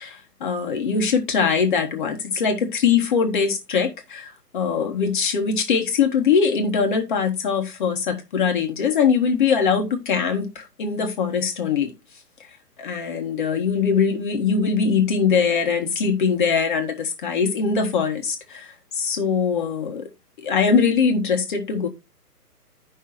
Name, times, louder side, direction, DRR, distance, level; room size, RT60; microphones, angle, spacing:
voice 1, 0.0-11.9 12.8-20.1 20.4-21.9, left 6 dB, 30° left, 1.4 m, -22 dB
15.0 x 5.6 x 2.5 m
figure-of-eight pair, 135°, 47 cm